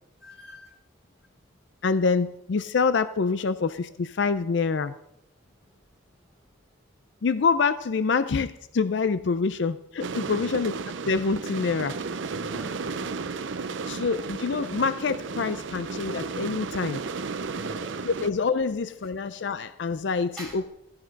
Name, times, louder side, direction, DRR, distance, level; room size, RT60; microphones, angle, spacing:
voice 1, 0.2-0.7 10.3-10.6 12.3-13.0 17.5-17.9 20.4-20.6, equal, ahead, -5 dB, 6.4 m, -43 dB
voice 2, 1.8-4.9 7.2-10.7 11.1-12.0 13.9-17.0 18.0-20.6, left 4 dB, 65° left, 13 dB, 0.4 m, -26 dB
sound 1, 10.0-18.3, right 4 dB, 70° right, 0.6 m, -33 dB
15.0 x 8.7 x 5.2 m, 0.84 s
head